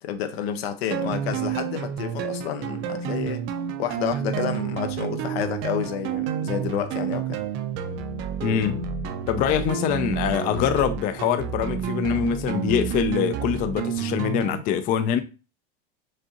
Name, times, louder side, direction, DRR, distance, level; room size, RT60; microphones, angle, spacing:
voice 1, 0.0-3.4 3.8-7.4, left 9 dB, 85° left, 0.9 m, -30 dB
sound 1, 0.9-14.6, right 8 dB, 40° right, 0.5 m, -29 dB
voice 2, 8.4-8.9 9.3-15.2, left 9 dB, 30° left, 0.3 m, -24 dB
5.2 x 3.6 x 2.8 m
supercardioid pair, 145°, 30 cm